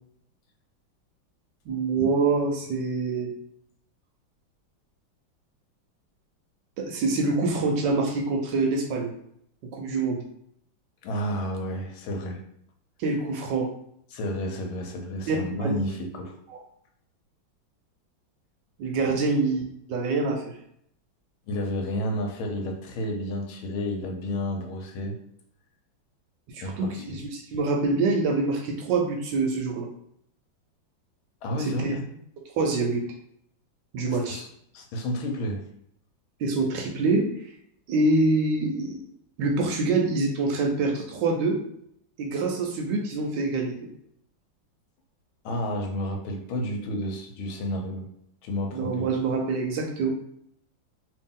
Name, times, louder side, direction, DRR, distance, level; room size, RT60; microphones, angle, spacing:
voice 1, 1.7-3.3 6.8-9.1 9.7-10.2 13.0-13.7 15.3-15.8 16.5-16.6 18.8-19.6 19.9-20.6 26.5-29.9 31.6-32.0 32.6-33.1 33.9-34.4 36.4-37.3 37.9-39.0 39.4-41.6 42.2-43.9 48.7-50.1, right 3 dB, 75° right, 2 dB, 1.1 m, -25 dB
voice 2, 11.0-12.4 14.1-16.3 19.1-19.2 21.5-25.1 26.6-27.2 31.4-32.0 34.1-34.5 34.7-35.6 45.4-48.1 48.4-49.1, equal, 85° left, 3 dB, 1.6 m, -31 dB
3.0 x 2.8 x 3.6 m, 0.70 s
omnidirectional pair, 2.2 m